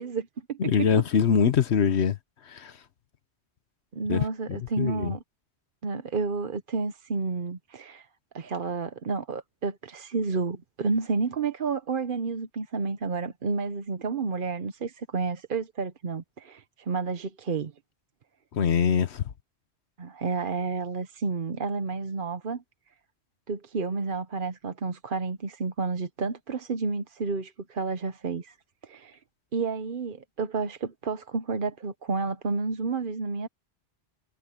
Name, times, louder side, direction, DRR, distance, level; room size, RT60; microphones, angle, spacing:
voice 1, 0.0-0.9 3.9-5.2 5.8-8.1 8.3-17.7 20.0-22.6 23.5-28.5 28.8-29.2 29.5-33.5, right 4 dB, 55° right, 1.0 m, -30 dB
voice 2, 0.6-2.2 2.5-2.7 4.1-5.1 18.5-19.2, left 7 dB, 75° left, 1.2 m, -24 dB
omnidirectional pair, 1.1 m